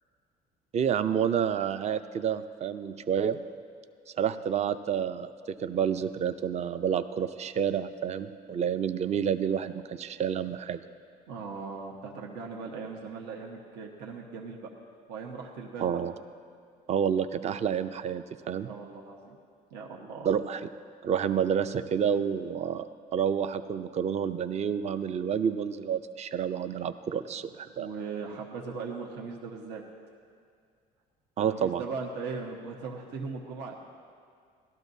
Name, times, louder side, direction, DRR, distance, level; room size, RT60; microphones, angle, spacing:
voice 1, 0.7-3.4 4.1-5.3 5.6-10.8 15.8-16.1 16.9-18.7 20.2-20.7 21.0-22.9 23.1-27.9 31.4-31.8, right 8 dB, 40° right, 11 dB, 0.5 m, -29 dB
voice 2, 11.3-14.7 15.1-16.0 18.6-19.4 19.7-20.3 27.8-29.8 31.5-33.8, right 4 dB, 85° right, 0 dB, 1.2 m, -39 dB
18.0 x 12.5 x 2.7 m, 2.2 s
cardioid pair, 110°, 17 cm